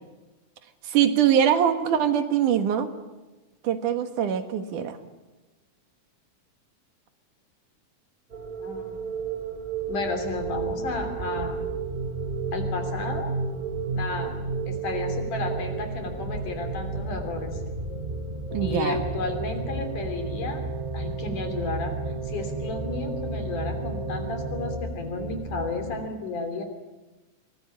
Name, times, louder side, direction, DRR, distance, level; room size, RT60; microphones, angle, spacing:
voice 1, 0.8-2.9 3.6-5.0 18.5-19.0, right 9 dB, 80° right, 8 dB, 3.1 m, -23 dB
sound 1, 8.3-26.1, right 3 dB, 40° right, 0.6 m, -32 dB
voice 2, 8.6-9.1 9.9-11.6 12.5-13.3 13.9-14.4 14.7-17.6 18.6-20.6 20.9-21.9 22.3-26.6, left 3 dB, 85° left, 6 dB, 4.8 m, -33 dB
sound 2, 18.5-24.8, right 11 dB, 60° right, 1.4 m, -36 dB
24.0 x 19.5 x 8.7 m, 1.1 s
omnidirectional pair, 3.5 m